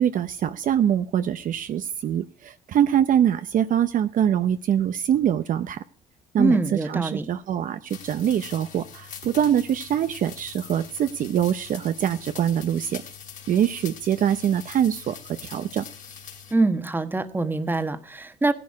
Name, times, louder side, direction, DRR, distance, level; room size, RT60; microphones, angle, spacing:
voice 1, 0.0-5.8 6.3-13.0 13.5-15.9, right 9 dB, 50° right, 10 dB, 0.7 m, -24 dB
voice 2, 6.4-7.2 16.5-18.5, right 2 dB, 10° right, 9 dB, 1.2 m, -24 dB
sound 1, 7.9-16.5, left 7 dB, 50° left, 2.5 m, -43 dB
16.0 x 11.0 x 4.7 m, 0.41 s
cardioid pair, 110°, 17 cm